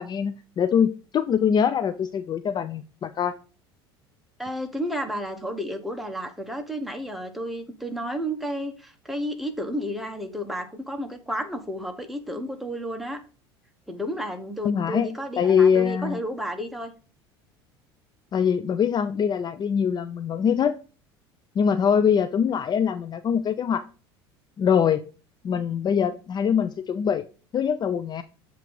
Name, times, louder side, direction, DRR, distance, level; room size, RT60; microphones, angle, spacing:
voice 1, 0.0-3.3 14.6-16.2 18.3-20.8 21.6-23.8 24.6-25.0 25.4-27.3 27.5-28.2, left 7 dB, 35° left, 11 dB, 0.4 m, -23 dB
voice 2, 4.4-13.2 13.9-16.9, equal, ahead, 5 dB, 1.2 m, -32 dB
7.4 x 3.0 x 5.3 m, 0.35 s
hypercardioid pair, 80°, 13 cm